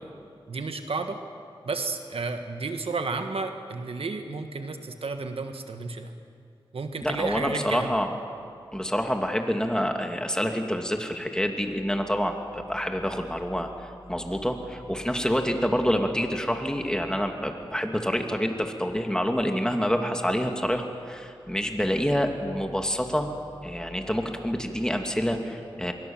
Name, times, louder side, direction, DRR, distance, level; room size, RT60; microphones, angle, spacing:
voice 1, 0.5-1.2 1.7-6.1 6.7-7.9, right 3 dB, 85° right, 6 dB, 1.6 m, -32 dB
voice 2, 7.0-8.1 8.7-23.3 23.6-25.9, equal, 5° left, 4 dB, 2.8 m, -27 dB
25.5 x 22.5 x 7.4 m, 2.3 s
cardioid pair, 50°, 9 cm